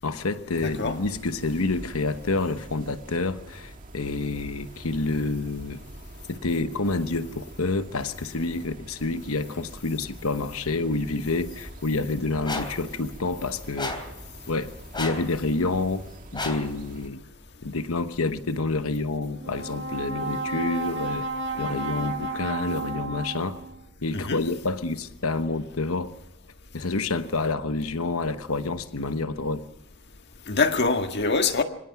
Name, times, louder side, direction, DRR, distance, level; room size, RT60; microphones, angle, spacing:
voice 1, 0.0-5.8 6.3-14.0 14.5-16.1 16.3-17.2 17.6-21.3 21.5-23.6 24.0-26.1 26.7-29.6, left 3 dB, 85° left, 1.1 m, -28 dB
sound 1, 0.5-17.1, right 1 dB, 40° right, 1.9 m, -45 dB
voice 2, 0.6-1.0 24.1-24.4 30.5-31.6, left 4 dB, 55° left, 1.7 m, -24 dB
sound 2, 12.4-12.8 13.8-14.2 14.9-15.3 16.3-16.7, left 2 dB, 20° left, 3.3 m, -32 dB
Brass instrument, 19.4-23.8, right 2 dB, 55° right, 2.2 m, -32 dB
25.0 x 17.5 x 5.9 m
head